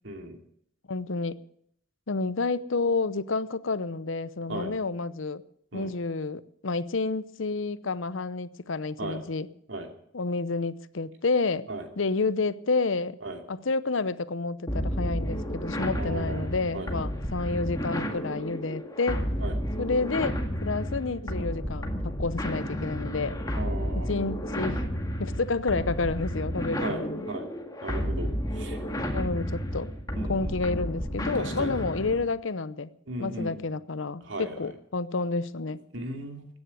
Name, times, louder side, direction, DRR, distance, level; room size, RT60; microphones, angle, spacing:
voice 1, 0.0-0.4 4.5-4.7 5.7-5.9 9.0-9.2 9.7-9.9 11.7-11.8 13.2-13.4 16.0-16.5 16.7-17.0 19.4-19.5 23.5-24.1 26.8-27.0 27.3-27.5 27.8-28.3 28.6-28.8 30.2-30.5 31.4-31.7 33.1-33.5 34.2-34.5 35.9-36.5, right 1 dB, 70° right, 5 dB, 2.7 m, -36 dB
voice 2, 0.9-1.4 2.1-5.4 5.7-9.5 10.1-11.7 12.0-13.2 13.5-19.2 19.8-20.4 20.6-21.9 22.2-23.4 23.9-24.9 25.2-27.3 29.1-29.9 30.3-32.9 33.2-35.8, left 3 dB, 75° left, 16 dB, 0.8 m, -29 dB
sound 1, 14.7-32.3, equal, 20° left, 2.0 m, -31 dB
15.5 x 9.7 x 9.4 m, 0.68 s
head